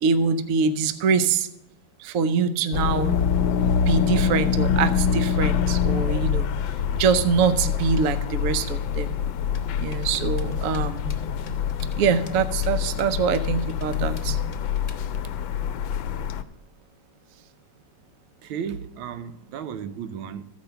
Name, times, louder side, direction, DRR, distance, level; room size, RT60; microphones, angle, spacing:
voice 1, 0.0-1.5 2.0-3.2 3.9-6.5 6.9-9.1 9.8-11.1 12.0-14.4, right 6 dB, 70° right, 0.8 m, -24 dB
sound 1, 2.7-16.4, left 7 dB, 75° left, 1.2 m, -25 dB
sound 2, 9.5-15.1, left 2 dB, 45° left, 0.5 m, -40 dB
voice 2, 18.4-20.4, right 7 dB, 90° right, 1.5 m, -34 dB
14.0 x 5.3 x 6.7 m
omnidirectional pair, 2.2 m